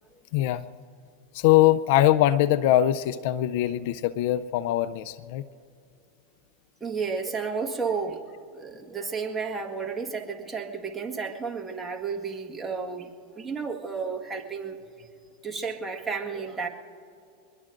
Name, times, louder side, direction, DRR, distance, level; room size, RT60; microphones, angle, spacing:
voice 1, 0.3-0.6 1.3-5.5, left 13 dB, 65° left, 16 dB, 0.4 m, -22 dB
voice 2, 6.8-13.1 13.4-15.1 15.4-16.7, right 5 dB, 15° right, 1 dB, 1.6 m, -32 dB
24.0 x 21.0 x 2.6 m, 2.6 s
hypercardioid pair, 105°, 0 cm